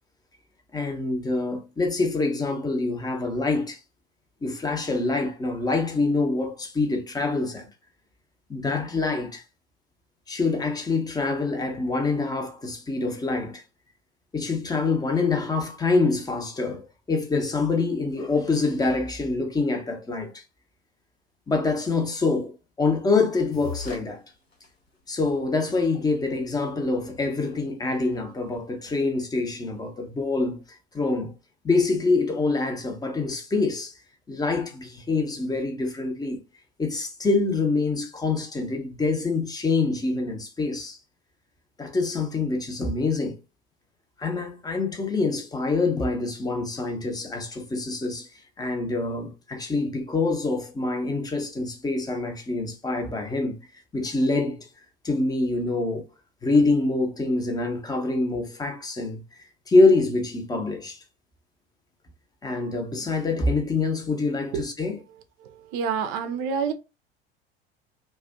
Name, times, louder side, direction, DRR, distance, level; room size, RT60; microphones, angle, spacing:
voice 1, 0.7-3.8 4.4-7.7 8.5-9.4 10.3-13.6 14.3-16.8 17.1-20.4 21.5-24.2 25.1-30.6 30.9-31.3 31.6-33.9 34.3-36.4 36.8-41.0 41.8-43.4 44.2-48.3 48.6-53.6 53.9-54.7 55.0-56.0 56.4-59.2 59.7-61.0 62.4-65.0, left 3 dB, 10° left, 0.6 m, -25 dB
sound 1, 23.5-24.0 24.5-24.7 25.3-25.4 25.7-25.8 26.1-29.8, left 5 dB, 80° left, 0.9 m, -43 dB
voice 2, 65.4-66.7, right 6 dB, 50° right, 0.4 m, -28 dB
2.4 x 2.1 x 2.4 m
figure-of-eight pair, 75°, 31 cm